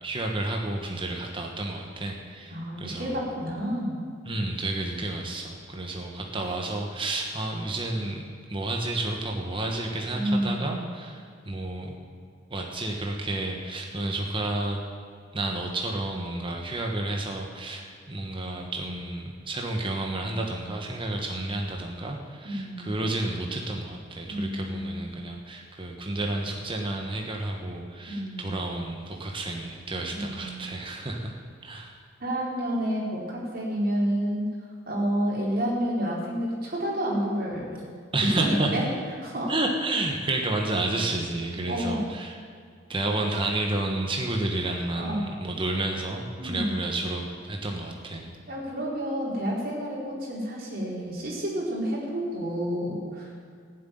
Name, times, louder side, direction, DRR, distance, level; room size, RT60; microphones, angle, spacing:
voice 1, 0.0-3.2 4.2-8.2 8.5-12.0 12.5-14.8 15.3-31.3 31.6-31.9 38.1-38.7 39.5-42.4 42.9-48.3, right 2 dB, 30° right, 1 dB, 1.3 m, -31 dB
voice 2, 2.5-4.0 10.1-10.7 22.4-22.9 24.3-25.1 28.1-28.5 30.1-30.6 32.2-34.5 34.9-37.8 38.4-38.8 39.2-39.5 41.7-42.0 45.0-45.3 46.4-46.8 48.5-53.4, equal, 55° right, -4 dB, 4.3 m, -29 dB
15.0 x 7.8 x 9.3 m, 2.1 s
head